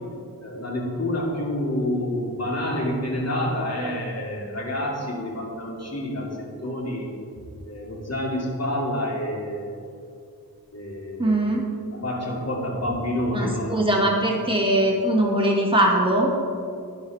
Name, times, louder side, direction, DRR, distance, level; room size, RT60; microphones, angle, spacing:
voice 1, 0.4-7.1 7.6-9.8 10.7-11.4 11.9-14.0, left 1 dB, 40° left, -3 dB, 2.8 m, -28 dB
voice 2, 11.2-11.7 13.3-16.3, right 1 dB, 15° right, -2 dB, 2.0 m, -21 dB
11.5 x 10.5 x 3.6 m, 2.4 s
wide cardioid pair, 55°, 38 cm